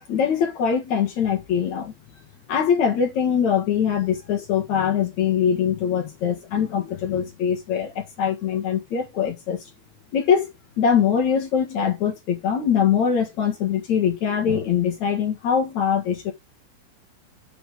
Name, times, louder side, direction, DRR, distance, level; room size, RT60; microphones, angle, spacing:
voice 1, 0.0-1.9 2.5-9.6 10.1-16.3, left 7 dB, 55° left, 2.4 m, -22 dB
8.3 x 5.1 x 3.6 m
omnidirectional pair, 5.0 m